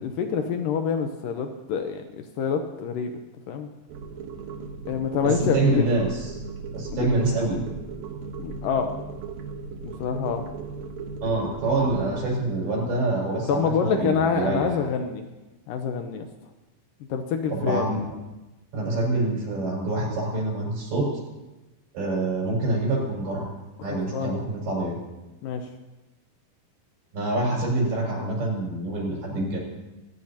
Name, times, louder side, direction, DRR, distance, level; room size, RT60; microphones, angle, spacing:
voice 1, 0.0-3.1 3.5-3.7 4.9-6.0 6.9-7.1 8.4-8.9 9.8-10.4 13.5-15.2 15.7-16.3 17.1-17.9 23.8-24.3 25.4-25.7, left 6 dB, 75° left, 6 dB, 2.2 m, -26 dB
sound 1, 3.9-12.2, right 4 dB, 65° right, 2.1 m, -37 dB
voice 2, 5.2-6.3 6.7-7.6 11.2-14.8 17.5-18.0 18.7-21.1 21.9-23.5 23.8-25.0 27.1-29.6, right 2 dB, 80° right, -4 dB, 7.4 m, -26 dB
26.5 x 14.5 x 2.9 m, 1.1 s
omnidirectional pair, 4.5 m